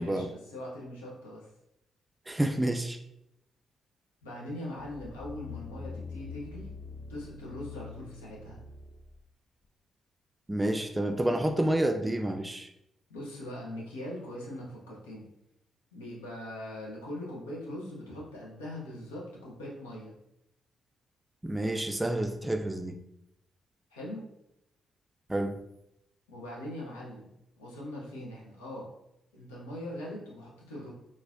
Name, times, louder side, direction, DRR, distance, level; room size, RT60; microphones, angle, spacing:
voice 1, 0.0-1.5 4.2-6.7 7.1-8.6 13.1-15.3 15.9-20.1 23.9-24.3 26.3-27.3 27.6-28.9 29.3-30.9, left 1 dB, 85° left, -4 dB, 0.8 m, -41 dB
voice 2, 2.3-3.0 10.5-12.7 21.4-23.0 25.3-25.6, right 1 dB, 15° right, 6 dB, 0.4 m, -29 dB
sound 1, 4.8-9.2 9.6-9.7, left 4 dB, 50° left, 0.5 m, -44 dB
3.9 x 2.5 x 2.6 m, 0.82 s
hypercardioid pair, 40°, 0 cm